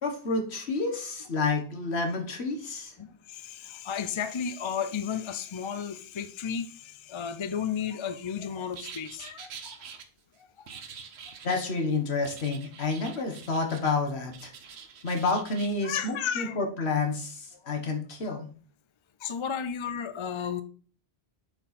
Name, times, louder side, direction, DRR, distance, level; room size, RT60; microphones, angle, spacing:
voice 1, 0.0-2.9 11.4-14.5 15.0-18.5, left 3 dB, 80° left, 1.7 m, -29 dB
voice 2, 3.0-9.8 10.6-10.7 15.8-16.7 17.6-17.8 19.2-20.6, left 7 dB, 35° left, 0.5 m, -33 dB
sound 1, 8.7-10.0 10.7-11.7 12.2-14.0 14.3-15.7, right 6 dB, 80° right, 1.1 m, -45 dB
7.6 x 4.5 x 4.2 m
omnidirectional pair, 1.1 m